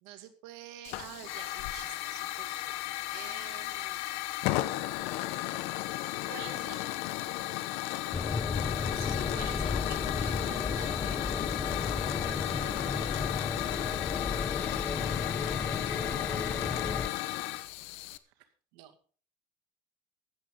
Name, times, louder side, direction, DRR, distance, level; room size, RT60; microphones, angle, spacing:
voice 1, 0.0-2.8 3.1-4.1 6.3-6.9 8.7-11.2 12.2-13.3 18.4-18.5 18.7-19.0, right 12 dB, 85° right, 8 dB, 2.3 m, -48 dB
Hiss / Fire, 0.8-18.2, left 16 dB, 80° left, 1.0 m, -34 dB
sound 1, 8.1-17.1, left 4 dB, 15° left, 0.5 m, -34 dB
voice 2, 14.9-16.6, right 8 dB, 55° right, 4 dB, 2.7 m, -54 dB
16.0 x 12.5 x 3.9 m, 0.42 s
cardioid pair, 115°, 11 cm